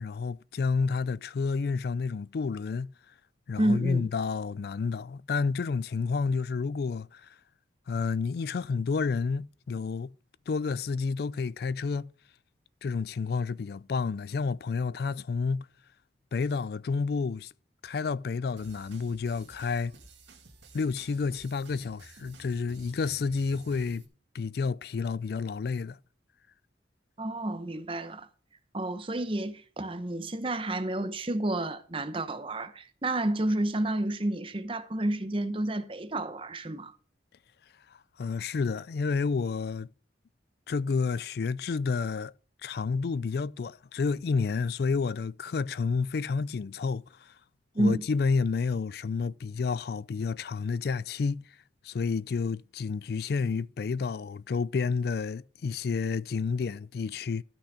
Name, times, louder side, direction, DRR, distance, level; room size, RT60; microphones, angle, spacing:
voice 1, 0.0-2.9 3.5-7.3 7.9-10.1 10.5-12.1 12.8-15.7 16.3-17.5 17.8-19.9 20.7-24.0 24.3-26.0 38.2-39.9 40.7-42.3 42.6-47.3 47.8-51.4 51.8-57.4, left 5 dB, 60° left, 0.3 m, -30 dB
voice 2, 3.6-4.1 27.2-28.3 28.7-36.9 47.7-48.1, right 1 dB, 30° right, 0.8 m, -30 dB
sound 1, 18.6-24.1, right 3 dB, 80° right, 2.0 m, -53 dB
13.0 x 6.0 x 4.9 m
head